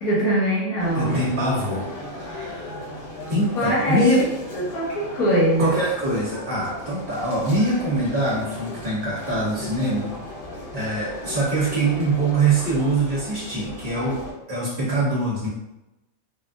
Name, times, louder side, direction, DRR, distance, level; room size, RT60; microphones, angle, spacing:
voice 1, 0.0-1.2 2.3-2.5 3.5-4.3 4.5-5.7, equal, 85° left, -6 dB, 1.6 m, -22 dB
sound 1, 0.8-14.3, left 1 dB, 40° left, 1.0 m, -36 dB
voice 2, 0.9-1.8 2.2-2.7 3.3-4.2 5.6-10.1 10.7-14.2 14.5-15.5, right 2 dB, 45° right, -8 dB, 1.0 m, -23 dB
3.4 x 2.4 x 2.5 m, 0.95 s
omnidirectional pair, 1.5 m